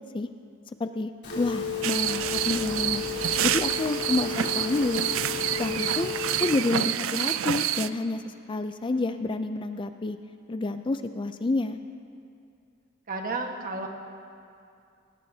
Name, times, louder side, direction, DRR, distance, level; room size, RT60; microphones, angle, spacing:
voice 1, 0.8-3.0 3.4-5.1 5.6-6.1 6.4-10.2 10.5-11.8, left 2 dB, 25° left, 9 dB, 0.4 m, -29 dB
Telephone, 1.2-6.4, left 6 dB, 60° left, 3.4 m, -33 dB
sound 1, 1.8-7.9, right 11 dB, 70° right, 0.4 m, -28 dB
voice 2, 13.1-13.9, right 3 dB, 45° right, 2 dB, 1.4 m, -32 dB
21.0 x 18.5 x 2.8 m, 2.5 s
head